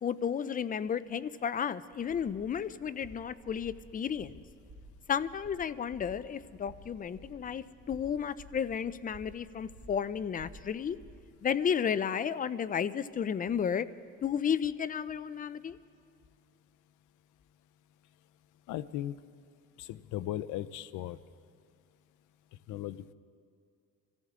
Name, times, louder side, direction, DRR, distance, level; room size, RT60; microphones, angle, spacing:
voice 1, 0.0-4.4 5.1-11.0 11.4-13.9 14.2-15.8, left 7 dB, 30° left, 15 dB, 0.4 m, -33 dB
sound 1, 1.9-11.4, right 1 dB, 25° right, 2.2 m, -54 dB
voice 2, 18.7-19.1 19.8-21.2 22.7-23.1, left 13 dB, 75° left, 16 dB, 0.6 m, -37 dB
25.5 x 14.5 x 3.7 m, 2.3 s
cardioid pair, 120°, 31 cm